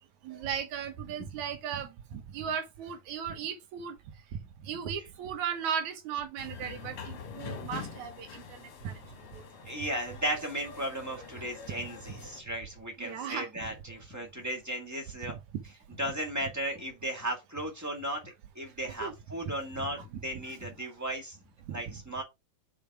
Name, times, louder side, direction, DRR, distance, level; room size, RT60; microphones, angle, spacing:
voice 1, 0.2-4.0 4.3-9.0 9.3-9.4 11.8-11.9 13.0-13.5 15.2-15.4 19.0-19.1 19.8-19.9 21.7-22.0, right 8 dB, 70° right, 2.2 m, -37 dB
sound 1, 6.4-12.4, left 5 dB, 50° left, 1.9 m, -45 dB
voice 2, 9.6-15.4 16.0-21.4 21.7-22.2, right 1 dB, 10° right, 0.8 m, -36 dB
5.5 x 5.1 x 4.6 m
omnidirectional pair, 3.8 m